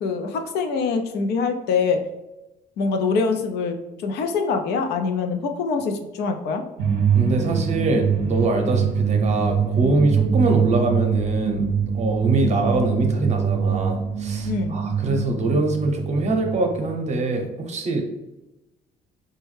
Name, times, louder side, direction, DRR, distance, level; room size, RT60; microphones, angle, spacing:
voice 1, 0.0-2.0 2.8-6.6 14.5-14.8, left 5 dB, 75° left, 6 dB, 0.5 m, -24 dB
sound 1, 6.8-17.0, right 7 dB, 75° right, 0.5 m, -23 dB
voice 2, 7.1-11.7 11.9-18.0, right 2 dB, 40° right, 3 dB, 0.7 m, -23 dB
4.2 x 2.2 x 3.2 m, 1.0 s
cardioid pair, 110°, 17 cm